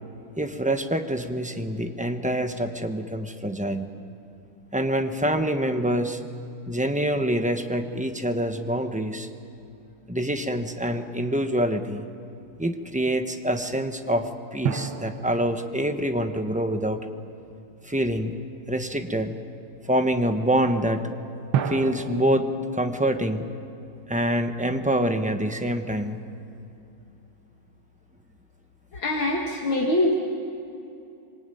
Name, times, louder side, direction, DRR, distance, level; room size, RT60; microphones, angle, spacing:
voice 1, 0.4-3.9 4.7-6.2 6.7-9.3 10.1-12.1 12.6-17.0 17.8-18.3 18.7-19.4 19.8-21.0 21.6-23.4 24.1-26.2, right 1 dB, 5° right, 6 dB, 0.5 m, -26 dB
sound 1, 14.6-17.5 21.5-24.8, right 7 dB, 80° right, 1.8 m, -33 dB
voice 2, 28.9-30.1, left 1 dB, 70° left, 0 dB, 2.6 m, -23 dB
26.0 x 23.5 x 9.2 m, 2.7 s
omnidirectional pair, 2.4 m